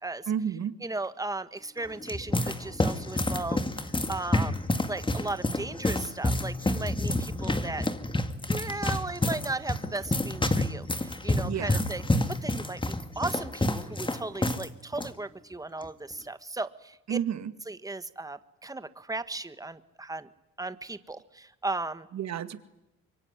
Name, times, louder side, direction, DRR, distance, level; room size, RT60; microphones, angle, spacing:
voice 1, 0.3-0.7 11.4-11.9 17.1-17.5 22.1-22.6, right 9 dB, 60° right, 11 dB, 2.1 m, -31 dB
voice 2, 0.8-4.6 4.9-7.8 8.5-17.2 17.7-20.3 20.6-22.1, right 2 dB, 10° right, 12 dB, 1.5 m, -36 dB
sound 1, 1.8-14.7 14.9-15.1 15.8-16.1, left 1 dB, 15° left, 2.2 m, -29 dB
25.5 x 23.5 x 9.9 m, 0.91 s
cardioid pair, 90°, 30 cm